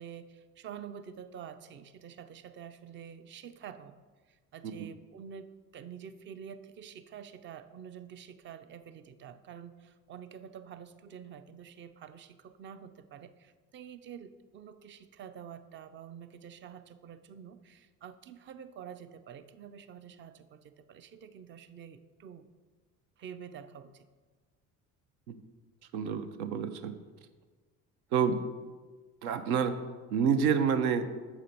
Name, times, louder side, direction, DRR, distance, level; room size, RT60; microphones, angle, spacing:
voice 1, 0.0-4.0 4.3-22.5 23.2-24.1, right 8 dB, 25° right, 12 dB, 0.4 m, -48 dB
voice 2, 25.9-27.0 28.1-28.4 29.2-29.8 30.1-31.1, right 7 dB, 70° right, 9 dB, 0.6 m, -28 dB
6.9 x 4.9 x 4.2 m, 1.4 s
figure-of-eight pair, 55°, 45 cm